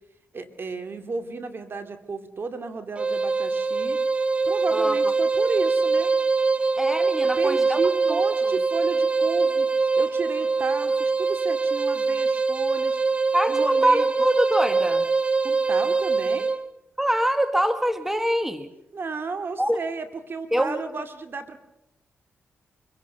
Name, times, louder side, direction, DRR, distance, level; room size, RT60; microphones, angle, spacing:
voice 1, 0.3-4.0 4.4-6.1 7.2-9.7 10.0-13.0 13.5-14.1 15.4-16.5 18.9-21.6, right 4 dB, 50° right, 8 dB, 2.4 m, -33 dB
sound 1, 3.0-16.6, right 4 dB, 25° right, 1.6 m, -23 dB
voice 2, 6.8-7.8 8.1-8.2 13.3-15.0 17.0-18.7 19.6-19.8 20.5-20.8, right 1 dB, 5° right, 9 dB, 1.7 m, -24 dB
25.0 x 17.0 x 6.9 m, 0.86 s
supercardioid pair, 55°, 5 cm